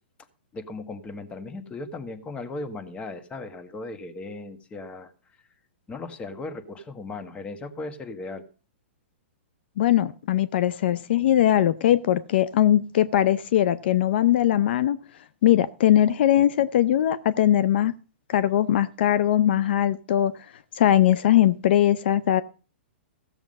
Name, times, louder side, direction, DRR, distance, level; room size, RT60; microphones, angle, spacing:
voice 1, 0.5-5.1 5.9-8.4, left 2 dB, 20° left, 8 dB, 1.5 m, -37 dB
voice 2, 9.8-15.0 15.4-17.9 18.3-20.3 20.7-22.4, left 12 dB, 60° left, 18 dB, 0.6 m, -20 dB
15.5 x 7.1 x 5.3 m, 0.37 s
hypercardioid pair, 130°, 6 cm